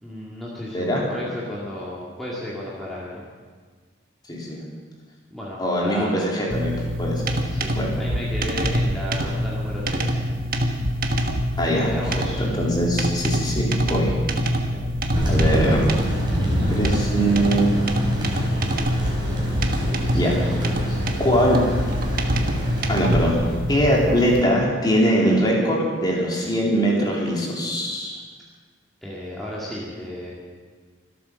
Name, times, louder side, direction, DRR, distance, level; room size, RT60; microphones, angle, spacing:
voice 1, 0.0-3.2 5.3-6.2 7.4-10.2 11.8-12.5 14.7-14.9 20.0-21.0 29.0-30.3, left 1 dB, ahead, -7 dB, 2.3 m, -34 dB
voice 2, 4.3-4.6 5.6-6.7 7.0-7.4 7.7-7.9 11.6-11.9 12.4-14.1 15.2-15.8 16.7-17.9 20.1-20.3 21.2-21.6 22.9-23.4 23.7-28.2, equal, 20° left, -3 dB, 3.3 m, -22 dB
sound 1, 6.5-24.4, equal, 45° right, 1.4 m, -25 dB
Thunder, 15.1-23.6, equal, 25° right, 4.1 m, -27 dB
25.5 x 8.6 x 6.5 m, 1.5 s
head